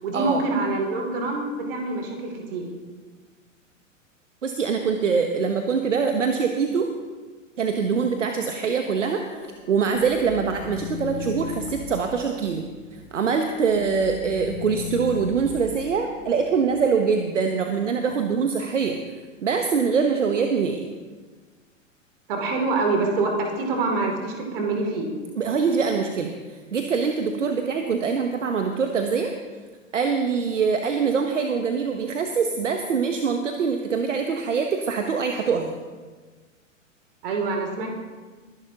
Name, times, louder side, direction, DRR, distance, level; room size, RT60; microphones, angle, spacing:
voice 1, 0.0-2.7 22.3-25.1 37.2-37.9, right 3 dB, 45° right, 2 dB, 2.8 m, -25 dB
voice 2, 4.4-6.9 7.6-12.6 12.9-19.0 19.4-20.8 25.4-29.3 29.9-35.7, right 5 dB, 65° right, 5 dB, 1.1 m, -24 dB
sound 1, 9.2-13.1 13.4-16.8, left 9 dB, 30° left, 2.1 m, -38 dB
21.5 x 11.0 x 2.9 m, 1.4 s
figure-of-eight pair, 105°, 39 cm